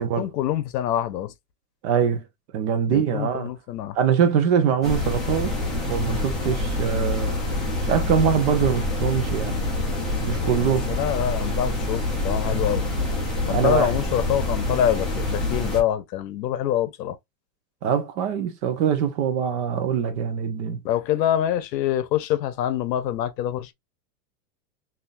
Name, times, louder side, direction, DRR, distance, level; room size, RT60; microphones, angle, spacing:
voice 1, 0.2-1.3 2.9-4.0 10.6-12.9 13.5-17.2 20.8-23.7, left 11 dB, 80° left, 0.8 m, -25 dB
voice 2, 1.8-2.2 2.5-3.5 3.9-5.5 5.9-7.4 7.8-9.5 10.3-10.9 13.5-13.9 17.8-20.8, right 7 dB, 45° right, 0.8 m, -23 dB
sound 1, 4.8-15.8, left 2 dB, ahead, 0.5 m, -26 dB
3.5 x 2.7 x 2.5 m
supercardioid pair, 150°, 49 cm